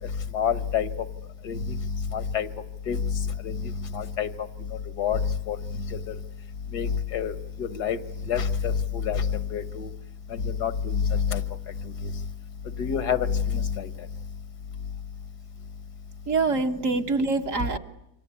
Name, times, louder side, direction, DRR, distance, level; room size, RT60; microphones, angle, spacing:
voice 1, 0.3-0.9 1.5-1.6 2.1-2.5 2.9-3.0 3.4-3.5 3.9-4.3 5.0-5.2 5.5-5.6 6.7-7.3 7.6-8.0 8.3-9.2 9.5-9.9 10.4-11.4 12.8-13.3 13.5-13.9, left 7 dB, 85° left, 13 dB, 1.9 m, -26 dB
voice 2, 16.3-17.8, right 3 dB, 55° right, 5 dB, 1.7 m, -25 dB
28.0 x 25.0 x 8.3 m, 0.84 s
omnidirectional pair, 1.7 m